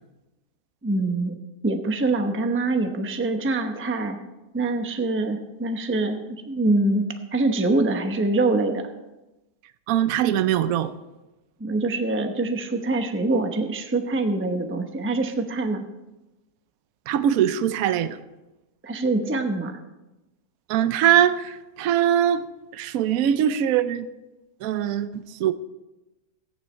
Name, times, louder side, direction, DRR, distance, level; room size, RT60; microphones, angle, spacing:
voice 1, 0.8-4.2 4.5-7.1 7.3-8.9 11.6-15.8 18.8-19.8, right 2 dB, 10° right, 6 dB, 0.7 m, -24 dB
voice 2, 9.9-10.9 17.1-18.2 20.7-22.4 22.7-24.1 24.6-25.5, right 10 dB, 70° right, 12 dB, 1.0 m, -22 dB
15.0 x 9.6 x 4.4 m, 1.0 s
omnidirectional pair, 1.7 m